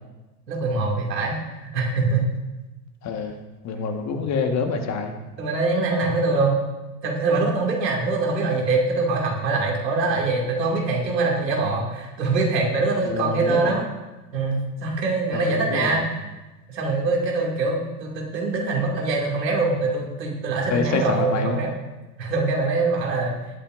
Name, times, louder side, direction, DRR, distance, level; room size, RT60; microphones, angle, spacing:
voice 1, 0.5-2.3 4.1-4.2 5.4-6.6 7.0-13.9 14.3-16.3 16.7-21.7 22.2-23.4, right 3 dB, 80° right, -1 dB, 2.6 m, -23 dB
voice 2, 3.0-3.4 3.6-5.1 13.0-13.8 15.3-16.0 20.7-21.6, left 4 dB, 35° left, 4 dB, 1.6 m, -26 dB
19.0 x 8.7 x 2.6 m, 1.1 s
hypercardioid pair, 85°, 50 cm